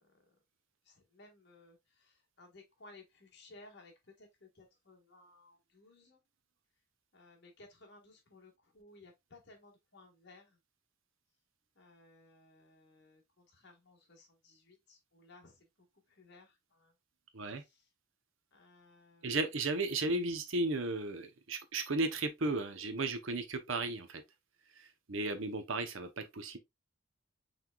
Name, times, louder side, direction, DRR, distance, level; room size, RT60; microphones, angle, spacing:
voice 1, 0.9-6.2 7.1-10.6 11.8-15.7 16.1-16.9 17.7-17.8 18.5-19.4 25.3-25.4, left 2 dB, 50° left, 1.5 m, -59 dB
voice 2, 19.2-24.2 24.8-26.6, right 2 dB, 65° right, 0.8 m, -35 dB
5.9 x 3.4 x 2.3 m
head